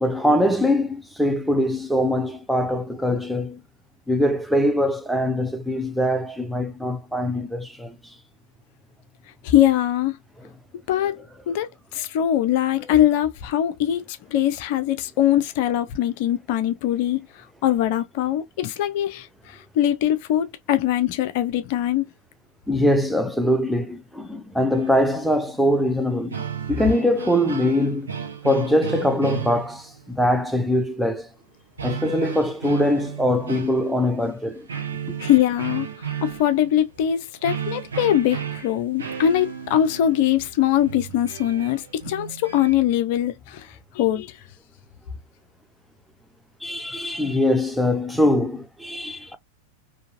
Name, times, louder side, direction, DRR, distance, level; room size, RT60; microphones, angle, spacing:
voice 1, 0.0-3.6 4.1-8.0 22.7-26.3 26.7-28.1 28.4-31.3 31.8-34.7 46.6-49.4, left 1 dB, ahead, 0.6 m, -22 dB
voice 2, 9.4-10.2 10.9-11.2 11.5-14.0 14.3-17.2 17.6-19.3 19.8-22.0 35.2-35.9 36.2-43.6 44.0-44.3, left 11 dB, 50° left, 0.6 m, -22 dB
sound 1, 24.7-25.8 26.1-30.2 31.8-34.3 34.7-42.7, right 7 dB, 70° right, 1.0 m, -34 dB
3.8 x 2.8 x 2.5 m
figure-of-eight pair, 90°, 0 cm